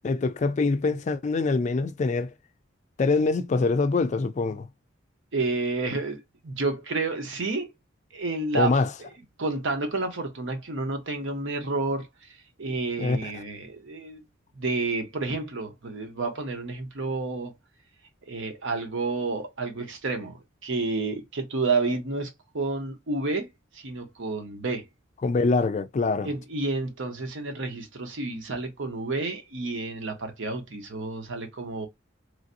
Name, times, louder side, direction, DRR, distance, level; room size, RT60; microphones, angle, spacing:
voice 1, 0.0-2.3 3.0-4.7 8.5-8.9 13.0-13.3 25.2-26.3, left 3 dB, 35° left, 0.3 m, -24 dB
voice 2, 5.3-7.7 8.1-8.8 9.4-12.1 12.6-14.2 14.5-17.5 18.3-24.9 26.2-31.9, right 3 dB, 75° right, 0.9 m, -30 dB
3.1 x 2.6 x 2.6 m
head